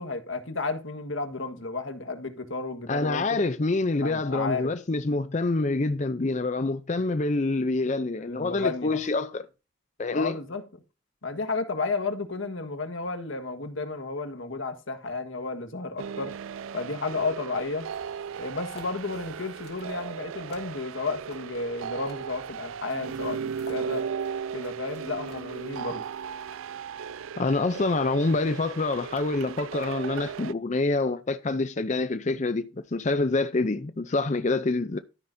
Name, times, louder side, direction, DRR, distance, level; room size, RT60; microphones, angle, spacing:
voice 1, 0.0-3.4 4.0-4.7 8.2-9.0 10.1-10.6 11.2-16.3 16.7-17.9 18.4-23.4 23.7-24.0 24.5-26.0, left 3 dB, 80° left, 1.6 m, -32 dB
voice 2, 2.9-9.4 10.0-10.4 27.4-35.0, left 3 dB, 35° left, 0.5 m, -26 dB
sound 1, 16.0-30.5, right 7 dB, 90° right, 0.4 m, -36 dB
sound 2, 17.8-26.5, left 2 dB, 55° left, 2.8 m, -53 dB
13.0 x 9.9 x 2.7 m
head